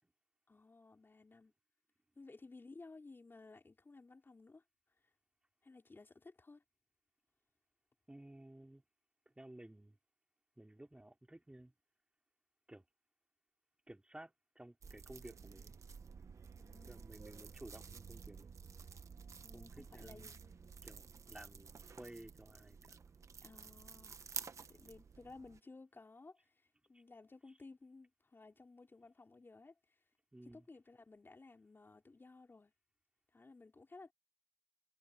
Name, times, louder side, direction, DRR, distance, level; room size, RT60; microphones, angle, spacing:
voice 1, 0.5-1.5 2.2-4.6 5.6-6.6 16.6-17.3 19.4-20.7 23.4-24.2 24.7-30.0 30.4-32.7 33.3-34.1, left 3 dB, 45° left, 4.4 m, -57 dB
voice 2, 8.1-8.8 9.4-10.0 10.6-11.7 12.7-12.8 13.9-15.8 16.8-18.5 19.5-20.3 20.8-23.0 30.3-30.6, right 1 dB, 15° right, 3.8 m, -55 dB
sound 1, 14.8-25.6, right 5 dB, 75° right, 1.0 m, -52 dB
cardioid pair, 65°, 5 cm